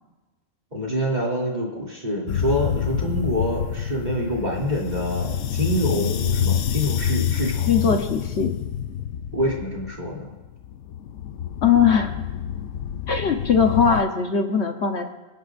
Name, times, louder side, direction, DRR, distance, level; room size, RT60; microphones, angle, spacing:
voice 1, 0.7-7.9 9.3-10.3, equal, 35° right, -3 dB, 3.1 m, -26 dB
sound 1, 2.3-14.0, left 9 dB, 90° left, 1.1 m, -27 dB
voice 2, 7.7-8.5 11.6-12.1 13.1-15.1, left 6 dB, 65° left, 4 dB, 1.3 m, -20 dB
28.0 x 10.5 x 2.6 m, 1.1 s
omnidirectional pair, 1.3 m